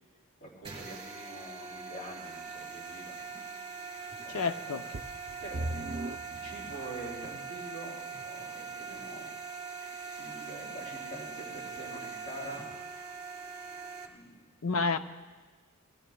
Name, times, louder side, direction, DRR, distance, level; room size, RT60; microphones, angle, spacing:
voice 1, 0.4-3.2 4.2-4.6 5.4-5.8 6.3-8.0 8.2-9.3 10.1-12.6 14.1-14.5, right 1 dB, 40° left, -4 dB, 3.0 m, -45 dB
sound 1, 0.6-14.1, right 5 dB, 20° right, 1.5 m, -42 dB
voice 2, 4.3-4.8 14.6-15.0, left 4 dB, 75° left, 10 dB, 0.6 m, -29 dB
sound 2, 4.9-7.4 8.0-8.1 8.7-8.8, right 2 dB, 50° right, 0.5 m, -39 dB
20.5 x 16.0 x 2.3 m, 1.4 s
head